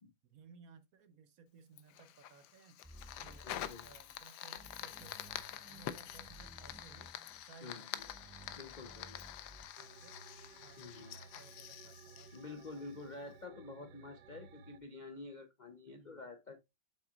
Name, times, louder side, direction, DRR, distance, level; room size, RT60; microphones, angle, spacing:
voice 1, 0.2-2.8 3.2-5.2 5.5-7.1 7.4-10.2 10.6-14.4 15.9-16.2, right 5 dB, 60° right, 1.1 m, -61 dB
Fire, 1.8-13.1, left 11 dB, 75° left, 1.2 m, -47 dB
sound 1, 2.8-4.2 4.5-7.4 8.0-9.7, right 1 dB, 10° right, 0.5 m, -57 dB
voice 2, 3.4-3.8 7.6-8.0 8.6-9.2 10.8-11.2 12.3-16.6, left 3 dB, 50° left, 0.5 m, -49 dB
sound 2, 9.8-14.8, right 5 dB, 80° right, 1.4 m, -57 dB
7.9 x 5.9 x 2.3 m
omnidirectional pair, 1.9 m